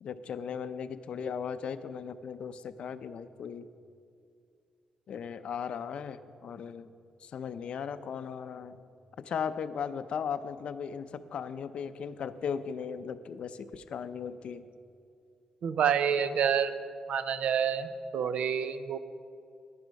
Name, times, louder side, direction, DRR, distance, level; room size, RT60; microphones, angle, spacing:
voice 1, 0.0-3.7 5.1-6.9 7.2-8.8 9.2-14.6, left 7 dB, 55° left, 12 dB, 0.5 m, -37 dB
voice 2, 15.6-16.7 17.1-19.0, right 8 dB, 65° right, 12 dB, 0.6 m, -28 dB
11.0 x 10.5 x 5.2 m, 2.4 s
wide cardioid pair, 155°, 2 cm